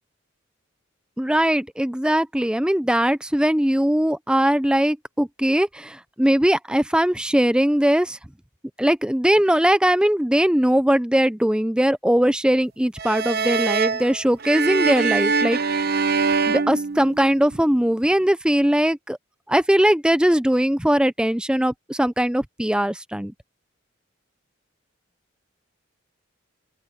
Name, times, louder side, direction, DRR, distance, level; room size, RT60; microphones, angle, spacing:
voice 1, 1.2-8.2 8.8-15.9 16.5-19.2 19.5-23.3, equal, 5° right, 0.5 m, -20 dB
sound 1, 13.0-17.6, right 5 dB, 50° right, 1.0 m, -23 dB
open air
head